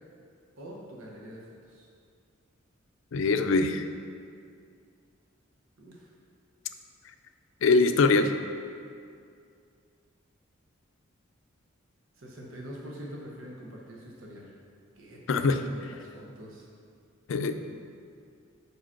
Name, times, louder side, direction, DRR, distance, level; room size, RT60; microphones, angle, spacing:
voice 1, 0.6-1.4 1.7-1.9 5.8-6.1 12.2-14.5 14.9-16.7, equal, 75° right, -3 dB, 0.9 m, -44 dB
voice 2, 3.1-3.9 7.6-8.3 15.3-15.6 17.3-17.5, left 3 dB, 70° left, 8 dB, 0.4 m, -23 dB
4.9 x 4.9 x 5.8 m, 2.3 s
head